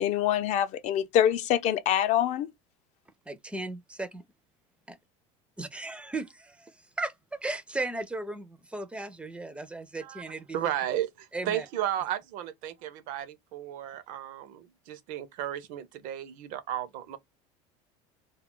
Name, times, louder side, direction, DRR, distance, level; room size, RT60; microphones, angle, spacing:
voice 1, 0.0-2.5, left 10 dB, 50° left, 0.5 m, -25 dB
voice 2, 3.3-4.2 4.9-5.0 5.6-10.6 11.3-11.7, right 2 dB, 10° right, 0.4 m, -36 dB
voice 3, 10.0-17.2, right 11 dB, 65° right, 0.6 m, -34 dB
2.3 x 2.1 x 3.6 m
supercardioid pair, 120°, 15 cm